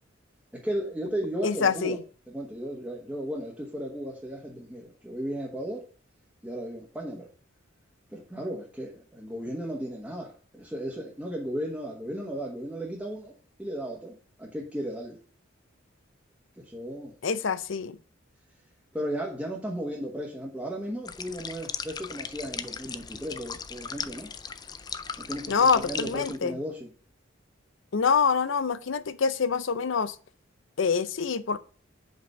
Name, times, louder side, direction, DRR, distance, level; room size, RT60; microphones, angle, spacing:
voice 1, 0.6-2.0 2.3-5.9 6.4-7.3 8.1-13.3 13.6-15.2 16.6-17.1 18.9-24.3 25.2-26.9, equal, 5° right, 1.2 m, -35 dB
voice 2, 1.4-2.0 17.2-18.0 25.5-26.6 27.9-30.2 30.8-31.6, left 5 dB, 70° left, 0.5 m, -25 dB
sound 1, 21.1-26.4, left 6 dB, 20° left, 0.3 m, -38 dB
5.4 x 5.1 x 6.2 m
head